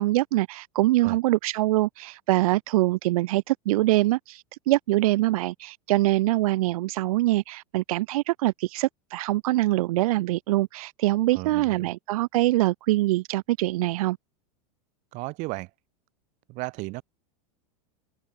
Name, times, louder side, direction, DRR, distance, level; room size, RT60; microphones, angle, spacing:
voice 1, 0.0-14.2, right 18 dB, 70° right, 0.8 m, -24 dB
voice 2, 11.3-11.9 15.1-15.7 16.5-17.0, right 24 dB, 40° right, 3.7 m, -34 dB
open air
supercardioid pair, 160°, 19 cm